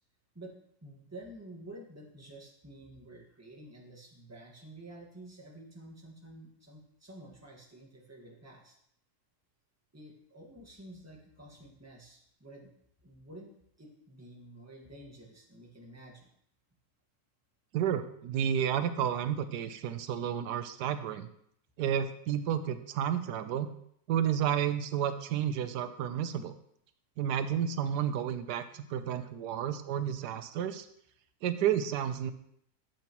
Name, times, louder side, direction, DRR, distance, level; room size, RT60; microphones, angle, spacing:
voice 1, 0.3-8.7 9.9-12.7 13.0-16.3, right 1 dB, 10° right, -1 dB, 1.5 m, -50 dB
voice 2, 17.7-21.3 21.8-23.7 24.1-26.5 27.2-30.9 31.4-32.3, right 9 dB, 90° right, 10 dB, 1.2 m, -31 dB
12.0 x 7.8 x 3.0 m, 0.70 s
omnidirectional pair, 1.7 m